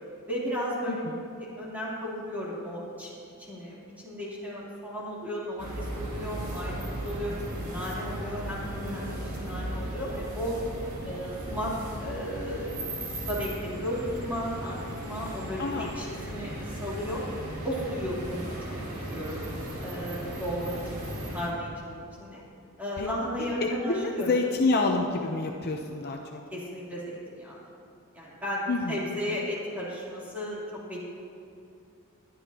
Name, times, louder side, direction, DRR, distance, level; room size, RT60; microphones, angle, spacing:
voice 1, 0.3-1.0 1.4-3.1 3.5-3.8 4.0-10.6 11.0-11.7 12.0-12.8 13.2-17.2 17.6-18.8 19.1-19.4 19.8-22.4 22.8-24.3 26.5-27.6 28.1-30.6 30.9-31.0, equal, 10° right, -8 dB, 3.4 m, -34 dB
sound 1, 5.6-21.5, right 1 dB, 80° right, 2.6 m, -36 dB
voice 2, 15.6-15.9 19.5-19.6 23.0-23.1 23.4-26.4 28.7-29.0, left 3 dB, 45° left, 2 dB, 0.7 m, -28 dB
20.5 x 11.0 x 2.9 m, 2.7 s
head